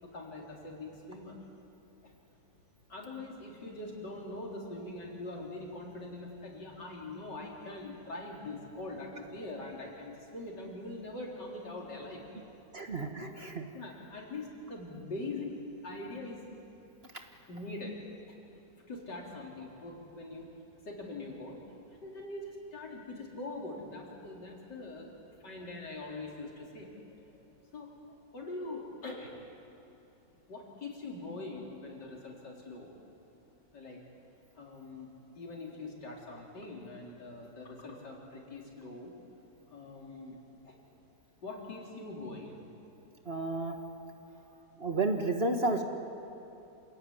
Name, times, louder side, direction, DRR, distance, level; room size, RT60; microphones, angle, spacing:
voice 1, 0.0-1.4 2.0-2.1 2.9-12.5 13.2-13.3 13.7-15.6 15.8-16.4 17.5-18.0 18.8-20.5 20.9-21.6 22.0-25.1 25.4-27.0 27.3-27.5 27.7-27.9 28.3-29.3 30.5-32.9 33.7-34.0 34.6-39.1 39.7-40.8 41.4-42.6 44.3-44.5, left 2 dB, 85° left, -2 dB, 4.4 m, -43 dB
voice 2, 12.7-13.6 43.2-43.8 44.8-45.8, right 2 dB, 40° right, 4 dB, 1.7 m, -31 dB
27.5 x 16.5 x 9.8 m, 3.0 s
omnidirectional pair, 1.8 m